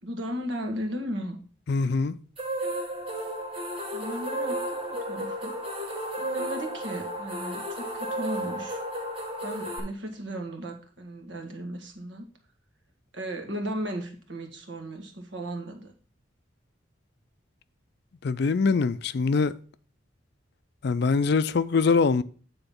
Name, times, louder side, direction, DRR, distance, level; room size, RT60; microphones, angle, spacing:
voice 1, 0.0-1.4 3.9-5.6 6.2-8.8 9.4-12.3 13.1-15.9, equal, 65° right, 1.6 m, -36 dB
voice 2, 1.7-2.1 18.2-19.5 20.8-22.2, left 4 dB, 55° left, 0.4 m, -23 dB
sound 1, 2.4-9.8, right 1 dB, 30° right, 1.9 m, -33 dB
9.1 x 3.9 x 5.4 m
head